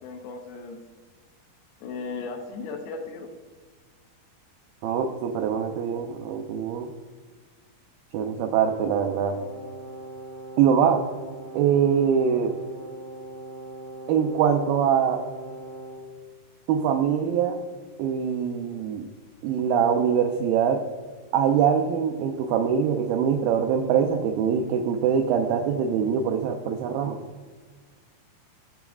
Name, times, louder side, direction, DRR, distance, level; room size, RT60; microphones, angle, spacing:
voice 1, 0.0-0.8 1.8-3.3, left 4 dB, 85° left, 0 dB, 2.6 m, -36 dB
voice 2, 4.8-6.9 8.1-9.4 10.6-11.0 11.5-12.6 14.1-15.2 16.7-17.6 18.0-19.1 19.4-20.8 21.3-27.2, right 7 dB, 85° right, 5 dB, 2.0 m, -23 dB
Brass instrument, 9.2-16.1, right 2 dB, 45° right, 3.8 m, -40 dB
13.5 x 7.0 x 2.3 m, 1.5 s
omnidirectional pair, 4.6 m